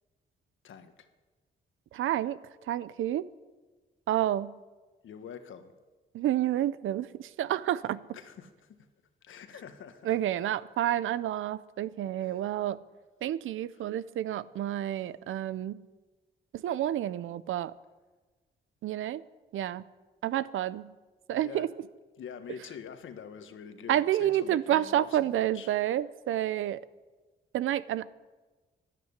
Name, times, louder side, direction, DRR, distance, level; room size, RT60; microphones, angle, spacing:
voice 1, 0.6-1.1 5.0-5.7 8.1-8.9 9.2-10.2 12.2-12.6 13.7-14.0 21.3-21.7 22.2-25.7, left 7 dB, 80° left, 9 dB, 1.5 m, -46 dB
voice 2, 1.9-2.4 2.7-3.3 4.1-4.6 6.1-8.0 10.1-12.8 13.2-15.8 16.6-17.7 18.8-19.2 19.5-19.8 20.2-20.9 21.3-21.7 23.9-26.8 27.5-28.1, right 12 dB, 85° right, 17 dB, 0.6 m, -29 dB
12.5 x 11.0 x 9.7 m, 1.2 s
cardioid pair, 60°, 20 cm